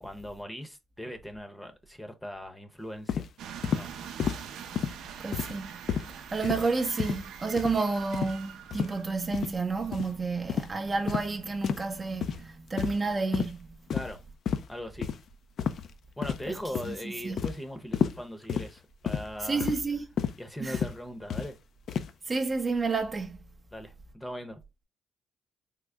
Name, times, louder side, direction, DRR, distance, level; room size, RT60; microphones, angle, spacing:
voice 1, 0.0-3.2 3.7-3.9 13.9-14.2 14.7-15.1 16.2-19.7 20.4-21.6 23.7-24.6, equal, 10° left, 0.7 m, -40 dB
sound 1, 3.1-3.3 3.6-3.9 4.2-4.4 4.8-5.0 5.3-5.6 5.9-6.1 6.4-6.7 7.0-7.2 7.6-7.8 8.1-8.4 8.7-8.9 9.3-9.5 9.9-10.1 10.5-10.7 11.1-11.3 11.6-11.9 12.2-12.4 12.8-13.1 13.3-13.5 13.9-14.2 14.5-14.7 15.0-15.2 15.6-15.9 16.2-16.5 16.8-17.0 17.4-17.6 17.9-18.2 18.5-18.7 19.1-19.3 19.6-19.8 20.2-20.4 20.7-20.9 21.3-21.5 21.9-22.1, left 7 dB, 65° left, 0.4 m, -30 dB
sound 2, 3.4-12.5, right 8 dB, 85° right, 0.5 m, -45 dB
voice 2, 5.2-5.7 6.1-13.7 16.5-16.6 16.9-17.4 19.4-20.1 20.6-20.8 22.3-23.4, right 4 dB, 30° right, 0.5 m, -30 dB
3.6 x 2.0 x 3.3 m
cardioid pair, 90°, 0 cm